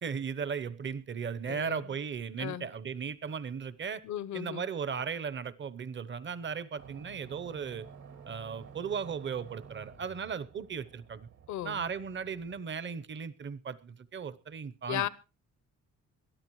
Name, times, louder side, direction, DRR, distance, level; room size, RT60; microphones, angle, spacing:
voice 1, 0.0-4.0 4.3-7.9 8.3-11.3 11.6-15.1, right 6 dB, 40° right, 0.9 m, -36 dB
voice 2, 1.5-1.8 2.4-2.7 4.0-4.6 11.5-11.8 14.9-15.1, left 12 dB, 70° left, 0.8 m, -35 dB
sound 1, 6.8-12.6, right 7 dB, 70° right, 2.4 m, -52 dB
22.0 x 13.0 x 3.1 m
cardioid pair, 90°, 30 cm